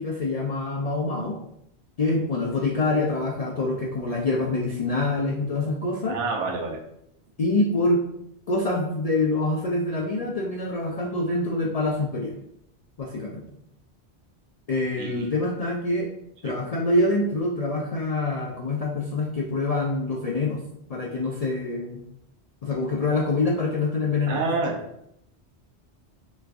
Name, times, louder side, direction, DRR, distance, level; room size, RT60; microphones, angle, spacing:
voice 1, 0.0-1.4 2.0-6.1 7.4-8.0 8.5-12.4 13.0-13.4 14.7-16.1 16.4-20.6 20.9-22.0 22.6-24.4, left 2 dB, 65° left, -2 dB, 0.3 m, -25 dB
voice 2, 6.1-6.8 15.0-15.3 16.4-16.6 24.3-24.8, right 3 dB, 90° right, 0 dB, 1.0 m, -28 dB
3.1 x 2.4 x 3.4 m, 0.76 s
omnidirectional pair, 1.2 m